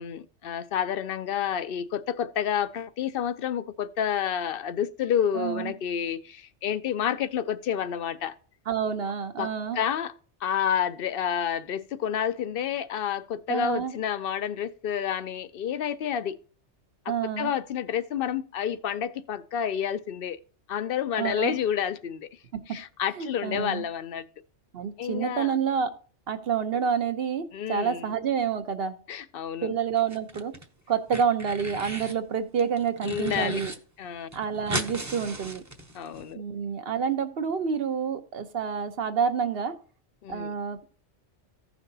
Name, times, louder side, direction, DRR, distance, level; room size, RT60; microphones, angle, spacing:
voice 1, 0.0-8.3 9.4-10.1 10.4-16.4 17.1-20.4 20.7-22.3 22.7-24.2 25.0-25.5 27.5-28.1 29.1-29.7 33.0-33.6 34.0-34.3 35.9-36.4 40.2-40.5, left 9 dB, 60° left, 0.7 m, -29 dB
voice 2, 5.3-5.7 8.7-9.8 13.5-13.9 17.1-17.5 21.2-21.6 22.5-22.6 23.2-23.9 24.7-25.9 26.3-29.0 29.6-30.5 30.9-33.7 34.3-35.6 36.3-39.7 40.3-40.8, right 7 dB, 60° right, 1.1 m, -28 dB
sound 1, 30.0-30.6 30.9-32.2 32.6-33.8 34.0-34.1 34.3-36.2, right 1 dB, 15° right, 0.8 m, -36 dB
15.5 x 5.9 x 2.7 m
omnidirectional pair, 1.2 m